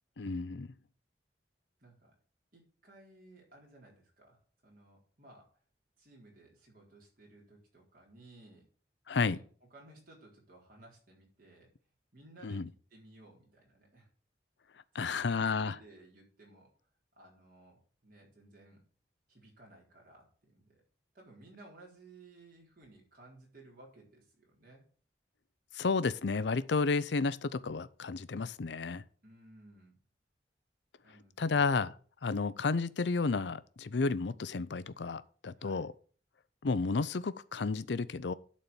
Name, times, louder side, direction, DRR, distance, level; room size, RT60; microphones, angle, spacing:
voice 1, 0.2-0.7 9.1-9.4 12.4-12.7 14.9-15.7 25.7-29.0 31.4-31.9 32.2-35.9 36.6-38.3, left 4 dB, 80° left, 0.6 m, -32 dB
voice 2, 1.8-2.2 2.5-5.5 6.0-8.7 9.3-9.4 9.7-11.7 12.1-14.1 14.9-16.7 17.2-18.8 19.3-20.8 21.1-24.8 29.2-30.0 31.0-31.6 35.6-35.9, right 2 dB, 50° right, 4.1 m, -58 dB
11.5 x 4.3 x 6.9 m
head